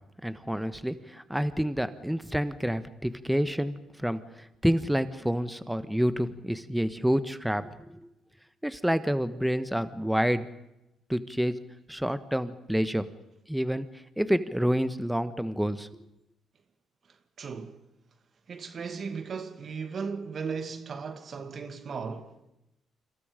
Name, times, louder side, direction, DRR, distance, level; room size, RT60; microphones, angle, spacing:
voice 1, 0.2-3.7 4.0-4.2 4.6-8.0 8.6-10.5 11.1-11.5 11.9-13.0 13.5-13.9 14.2-15.9, equal, 5° right, 1.4 m, -28 dB
voice 2, 17.4-17.8 18.5-22.4, right 5 dB, 50° right, 2.3 m, -36 dB
29.0 x 26.5 x 5.2 m
cardioid pair, 90°, 0 cm